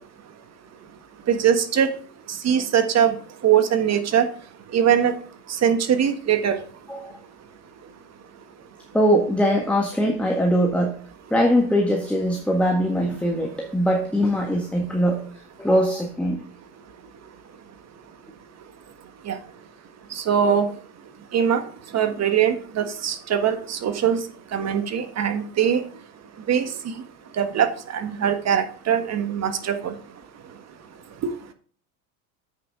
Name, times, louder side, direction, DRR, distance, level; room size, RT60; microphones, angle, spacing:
voice 1, 1.3-1.9 2.4-3.1 3.4-4.2 4.7-5.1 5.6-6.6 19.3-19.4 20.2-20.7 21.3-21.6 21.9-24.2 24.5-25.8 26.5-26.7 27.4-29.9 31.2-31.4, right 8 dB, 35° right, 8 dB, 1.5 m, -21 dB
voice 2, 8.9-11.0 11.3-15.2 15.6-16.4, equal, 5° left, 1 dB, 1.5 m, -21 dB
8.3 x 6.0 x 4.8 m, 0.44 s
hypercardioid pair, 80°, 44 cm